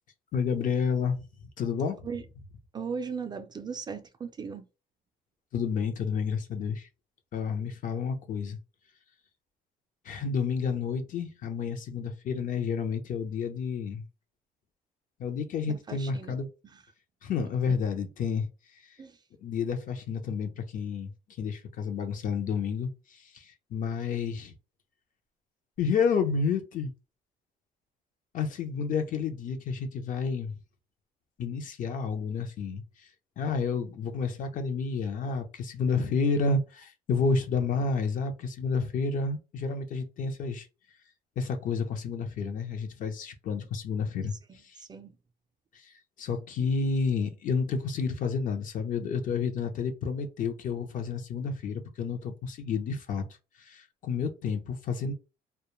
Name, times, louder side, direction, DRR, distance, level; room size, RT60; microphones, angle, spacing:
voice 1, 0.3-1.2 1.6-2.1 5.5-6.9 7.3-8.6 10.0-14.1 15.2-16.5 17.2-19.0 19.4-24.5 25.8-26.9 28.3-30.6 31.4-33.1 33.4-40.7 41.4-44.8 45.7-53.3 53.6-55.1, left 5 dB, 50° left, 0.6 m, -30 dB
voice 2, 2.7-4.7 15.7-16.4 16.6-16.8 17.7-17.8 19.0-19.2 44.8-45.2, right 6 dB, 25° right, 0.3 m, -38 dB
2.2 x 2.1 x 3.0 m
cardioid pair, 110°, 17 cm